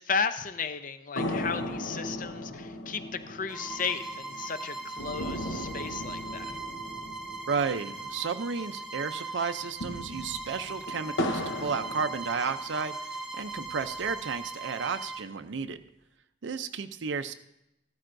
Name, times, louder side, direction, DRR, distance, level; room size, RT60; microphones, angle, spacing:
voice 1, 0.0-6.5, left 5 dB, 45° left, 10 dB, 0.6 m, -34 dB
sound 1, 1.2-8.8 9.0-9.1 9.6-12.9 13.4-14.4, left 1 dB, 75° left, 1.0 m, -37 dB
Bowed string instrument, 3.5-15.3, right 3 dB, 5° right, 0.9 m, -39 dB
voice 2, 7.5-15.8 16.4-17.3, right 5 dB, 70° right, 8 dB, 0.5 m, -33 dB
14.0 x 13.0 x 2.6 m, 0.85 s
head